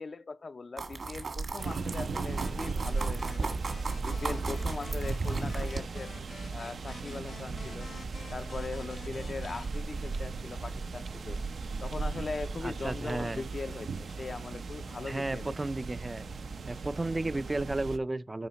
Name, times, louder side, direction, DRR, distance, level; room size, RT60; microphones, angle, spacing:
voice 1, 0.0-3.5 4.0-6.1 6.5-7.9 8.3-11.4 11.8-15.5, left 4 dB, 45° left, 0.4 m, -40 dB
sound 1, 0.8-5.8, right 3 dB, 60° right, 1.6 m, -35 dB
sound 2, 1.6-18.0, right 4 dB, 85° right, 0.5 m, -37 dB
sound 3, 2.4-9.7, left 4 dB, 70° left, 1.0 m, -50 dB
voice 2, 12.6-13.4 15.1-16.3 16.7-18.5, right 2 dB, 20° right, 0.3 m, -33 dB
9.8 x 4.8 x 4.0 m
wide cardioid pair, 140°, 0 cm